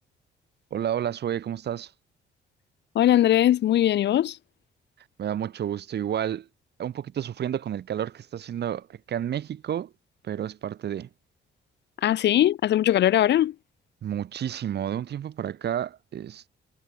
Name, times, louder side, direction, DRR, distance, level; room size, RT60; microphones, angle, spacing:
voice 1, 0.7-1.9 5.2-6.4 6.8-9.9 10.2-11.1 14.0-16.5, right 10 dB, 55° right, 1.1 m, -30 dB
voice 2, 2.9-4.4 12.0-13.5, left 12 dB, 60° left, 0.6 m, -20 dB
cardioid pair, 90°, 20 cm